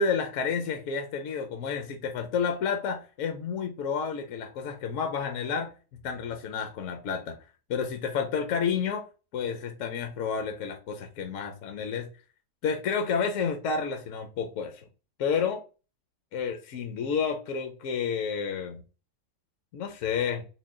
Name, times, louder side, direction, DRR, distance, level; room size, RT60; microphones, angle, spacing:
voice 1, 0.0-5.7 6.0-7.4 7.7-9.1 9.3-12.1 12.6-14.8 15.2-15.6 16.3-18.8 19.7-20.4, left 6 dB, 65° left, 0.8 m, -30 dB
3.9 x 2.2 x 3.6 m
omnidirectional pair, 1.8 m